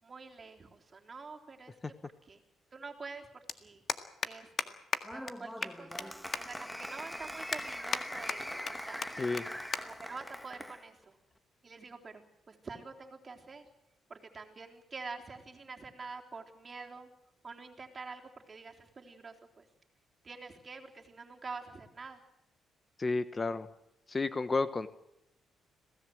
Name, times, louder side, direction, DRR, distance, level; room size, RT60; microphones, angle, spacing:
voice 1, 0.0-2.4 2.7-3.8 4.3-4.8 5.1-9.4 9.8-11.2 11.6-13.7 14.1-17.1 17.4-19.7 20.2-22.2, right 4 dB, 35° right, 2 dB, 3.7 m, -47 dB
sound 1, 1.2-1.3 2.7-2.8 3.0-3.2 3.5-3.6 3.9-4.3 4.6-4.7 4.9-5.0 5.3-5.4 5.6-6.1 6.3-6.4 6.9-7.0 7.5-8.0 8.3-8.7 9.0-9.1 9.4-9.5 9.7-9.8 10.1-10.4 11.2-11.4, left 5 dB, 45° left, 1.8 m, -34 dB
Applause, 5.0-10.8, equal, 5° left, 1.4 m, -42 dB
voice 2, 23.0-23.7 24.1-24.9, left 3 dB, 30° left, 12 dB, 1.1 m, -31 dB
26.0 x 17.5 x 7.9 m, 0.87 s
cardioid pair, 90°, 0 cm